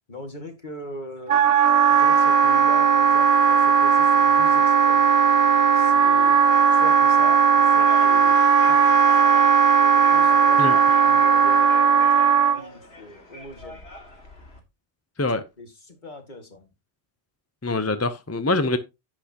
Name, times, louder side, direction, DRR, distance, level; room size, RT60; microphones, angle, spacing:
voice 1, 0.1-1.4 1.9-5.0 5.7-6.4 6.7-8.4 8.7-9.3 9.9-10.6 10.9-13.8 15.6-16.7, left 1 dB, 45° left, 2.2 m, -40 dB
Wind instrument woodwind instrument, 1.3-12.6, right 6 dB, 65° right, 0.9 m, -17 dB
sound 1, 5.2-14.6, left 1 dB, 75° left, 2.5 m, -43 dB
voice 2, 17.6-18.8, left 2 dB, 20° left, 0.5 m, -24 dB
10.5 x 8.4 x 2.9 m
omnidirectional pair, 1.1 m